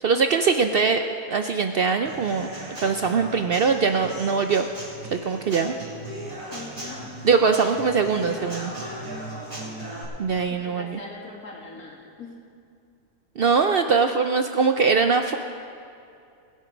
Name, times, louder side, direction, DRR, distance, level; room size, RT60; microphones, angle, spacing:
voice 1, 0.0-1.0 1.3-2.5 2.8-4.7 5.1-5.7 7.2-8.7 10.2-11.0 13.4-15.4, right 5 dB, 80° right, 6 dB, 0.5 m, -22 dB
Human voice / Acoustic guitar / Drum, 2.0-10.0, right 1 dB, 25° right, 4.3 m, -37 dB
voice 2, 6.5-7.3 7.7-7.8 9.4-9.6 10.6-12.4, left 3 dB, 65° left, -3 dB, 3.0 m, -42 dB
22.5 x 8.4 x 5.0 m, 2.5 s
omnidirectional pair, 1.7 m